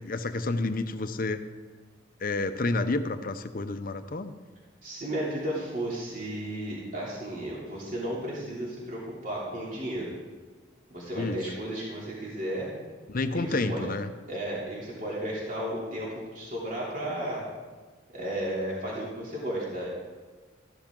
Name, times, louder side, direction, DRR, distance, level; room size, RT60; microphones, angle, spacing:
voice 1, 0.0-1.4 2.2-4.3 11.2-11.4 13.1-14.1, left 2 dB, 45° left, 10 dB, 0.7 m, -29 dB
voice 2, 4.8-10.1 10.9-12.7 13.3-13.9 14.3-17.4 18.1-19.9, right 1 dB, 45° right, -5 dB, 3.1 m, -34 dB
14.0 x 12.0 x 3.8 m, 1.4 s
head